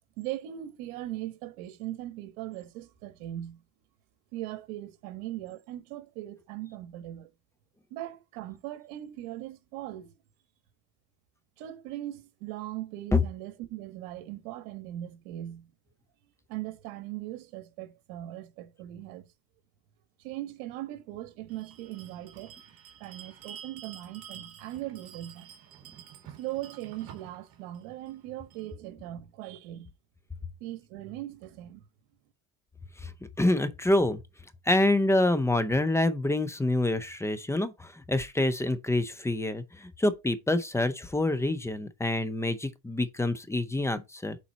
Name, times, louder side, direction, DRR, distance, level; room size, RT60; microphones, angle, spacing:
voice 1, 0.2-3.6 4.3-7.3 7.9-10.1 11.6-15.7 16.5-19.3 20.2-22.6 23.0-25.5 26.3-29.9 30.6-31.8, right 14 dB, 75° right, 1.4 m, -39 dB
Bell, 21.5-28.7, right 9 dB, 55° right, 2.2 m, -49 dB
voice 2, 33.4-34.2 34.7-44.4, left 2 dB, 5° left, 0.6 m, -26 dB
7.2 x 4.2 x 4.1 m
supercardioid pair, 120°, 44 cm